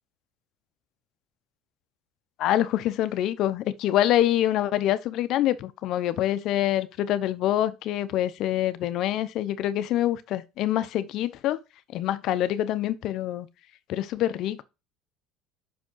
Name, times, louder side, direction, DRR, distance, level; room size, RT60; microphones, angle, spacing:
voice 1, 2.4-11.6 11.9-13.5 13.9-14.6, left 12 dB, 60° left, 0.7 m, -25 dB
5.9 x 5.0 x 3.8 m
supercardioid pair, 85°, 0 cm